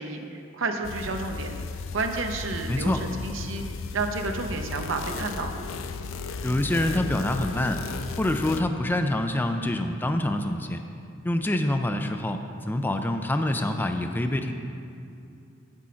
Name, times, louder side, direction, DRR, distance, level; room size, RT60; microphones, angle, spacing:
voice 1, 0.0-1.5 1.9-3.6 3.9-5.5, right 3 dB, 75° right, 5 dB, 0.7 m, -30 dB
sound 1, 0.8-8.6, left 4 dB, 80° left, 0.4 m, -35 dB
voice 2, 2.7-3.0 6.4-7.9 8.2-10.8 11.2-14.5, left 1 dB, 10° left, 6 dB, 0.3 m, -26 dB
7.3 x 6.2 x 5.6 m, 2.5 s
head